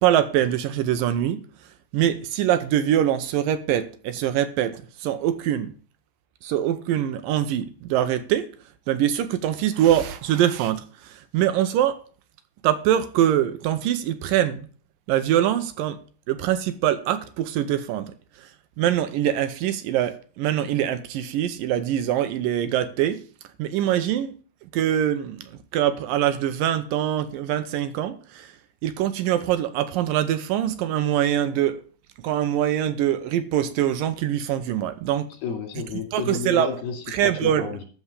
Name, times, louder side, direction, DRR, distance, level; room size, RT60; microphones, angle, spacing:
voice 1, 0.0-1.4 1.9-5.7 6.4-8.5 8.9-12.0 12.6-14.7 15.1-16.0 16.3-18.1 18.8-23.2 23.6-24.3 24.7-25.5 25.7-28.5 28.8-31.8 32.2-35.3 36.1-36.8 37.1-37.7, right 11 dB, 75° right, 2.3 m, -23 dB
voice 2, 35.4-37.8, left 5 dB, 80° left, 4.3 m, -31 dB
13.0 x 4.6 x 8.2 m
omnidirectional pair, 4.3 m